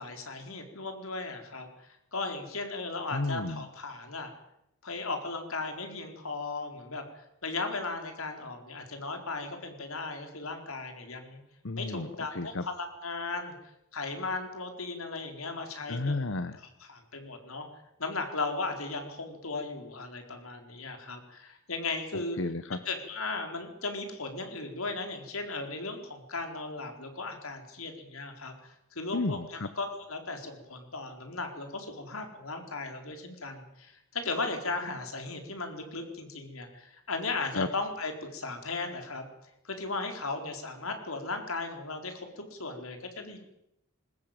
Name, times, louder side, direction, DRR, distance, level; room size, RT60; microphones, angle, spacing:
voice 1, 0.0-4.3 4.8-11.4 11.7-13.5 13.9-16.2 16.6-17.7 18.0-22.4 22.8-39.3 39.6-43.4, left 3 dB, 85° left, 5 dB, 4.3 m, -36 dB
voice 2, 3.1-3.6 11.6-12.6 15.9-16.6 22.4-22.8 29.1-29.7 37.5-37.7, left 2 dB, 65° left, 12 dB, 1.0 m, -32 dB
20.5 x 20.0 x 9.0 m, 0.82 s
head